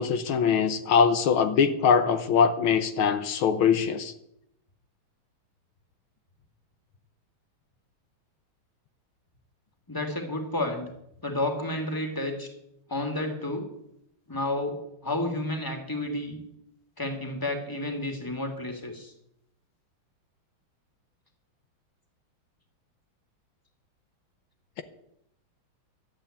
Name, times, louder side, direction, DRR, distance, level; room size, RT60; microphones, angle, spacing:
voice 1, 0.0-4.1, left 6 dB, 80° left, 9 dB, 1.8 m, -22 dB
voice 2, 9.9-10.9 11.2-12.5 12.9-13.7 14.3-16.4 17.0-19.1, left 1 dB, 10° left, 3 dB, 2.2 m, -31 dB
12.5 x 8.3 x 8.7 m, 0.77 s
omnidirectional pair, 2.3 m